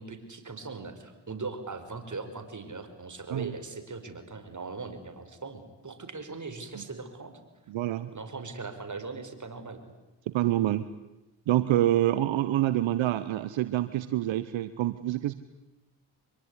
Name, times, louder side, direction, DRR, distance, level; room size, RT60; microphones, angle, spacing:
voice 1, 0.0-7.3 8.1-9.8, right 4 dB, 40° right, 8 dB, 5.5 m, -40 dB
voice 2, 7.7-8.1 10.3-10.9 11.5-15.3, right 14 dB, 80° right, 13 dB, 1.1 m, -26 dB
25.0 x 22.0 x 9.9 m, 1.0 s
supercardioid pair, 50°, 45 cm